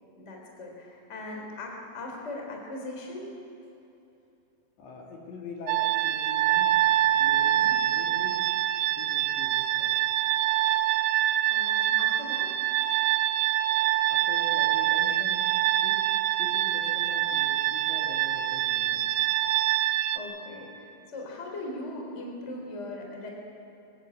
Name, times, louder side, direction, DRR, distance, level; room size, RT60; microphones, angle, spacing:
voice 1, 0.2-3.3 7.5-7.7 11.5-12.6 20.1-23.3, left 2 dB, 15° left, 1 dB, 3.1 m, -39 dB
voice 2, 4.8-6.8 7.1-8.4 8.9-10.0 14.2-15.4 15.8-16.0 16.4-19.3, left 3 dB, 65° left, -1 dB, 4.6 m, -43 dB
sound 1, 5.7-20.2, right 13 dB, 80° right, 2.8 m, -25 dB
23.0 x 16.0 x 9.8 m, 2.9 s
omnidirectional pair, 6.0 m